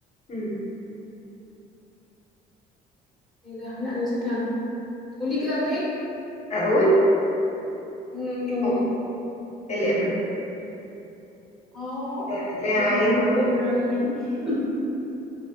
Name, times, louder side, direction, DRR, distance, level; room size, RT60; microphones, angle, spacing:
voice 1, 3.4-4.4 5.2-5.8 8.1-8.8 11.7-12.3 12.7-14.1 14.4-14.6, left 2 dB, ahead, -10 dB, 1.3 m, -27 dB
voice 2, 6.5-7.0 8.6-8.7 9.7-10.1 12.3-13.4, equal, 40° left, -6 dB, 0.9 m, -22 dB
5.4 x 2.2 x 2.2 m, 3.0 s
cardioid pair, 110°, 17 cm